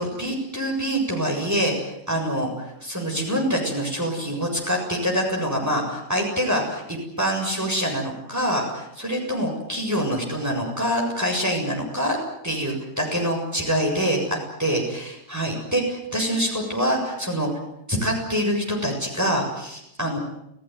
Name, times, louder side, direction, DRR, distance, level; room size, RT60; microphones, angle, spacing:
voice 1, 0.0-12.2 12.4-17.5 17.9-20.2, equal, 15° right, 0 dB, 7.4 m, -25 dB
30.0 x 17.5 x 9.6 m, 0.81 s
omnidirectional pair, 1.3 m